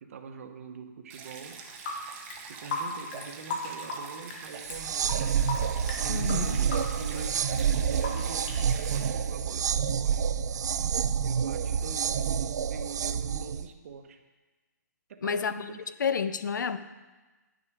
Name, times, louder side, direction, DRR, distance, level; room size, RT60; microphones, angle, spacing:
voice 1, 0.0-1.6 2.4-5.2 6.0-10.3 11.2-14.2 15.1-15.9, right 5 dB, 50° right, 6 dB, 0.9 m, -43 dB
Stream, 1.1-9.1, right 5 dB, 20° right, 0.7 m, -45 dB
sound 1, 1.5-2.0 2.3-5.2 5.5-7.6 8.0-8.6, left 3 dB, 30° left, 1.4 m, -36 dB
sound 2, 4.6-13.7, right 7 dB, 65° right, 0.4 m, -28 dB
voice 2, 6.1-6.6 15.2-15.7 16.0-16.8, left 6 dB, 80° left, 12 dB, 0.7 m, -29 dB
10.5 x 6.2 x 4.6 m, 1.2 s
hypercardioid pair, 165°, 10 cm